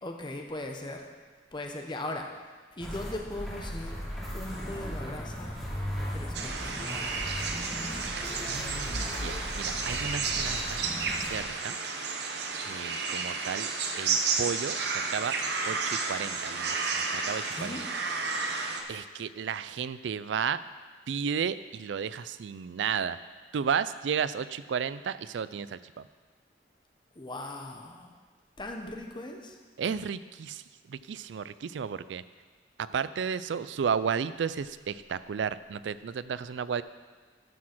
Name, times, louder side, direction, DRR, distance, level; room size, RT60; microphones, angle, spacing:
voice 1, 0.0-1.1 1.5-2.3 2.7-4.0 4.3-5.6 6.1-7.3 17.5-17.8 27.2-28.1 28.6-29.6, left 1 dB, 25° left, 2 dB, 1.0 m, -39 dB
sound 1, 2.8-11.5, equal, ahead, 2.8 m, -37 dB
sound 2, 6.3-18.8, right 4 dB, 65° right, 0.9 m, -32 dB
voice 2, 8.4-10.8 11.3-11.8 12.6-13.7 14.0-15.3 15.7-17.8 18.9-20.6 21.1-23.2 23.5-25.8 29.8-30.6 30.9-32.2 32.8-36.8, right 7 dB, 85° right, 15 dB, 0.4 m, -33 dB
11.5 x 6.2 x 6.1 m, 1.4 s
head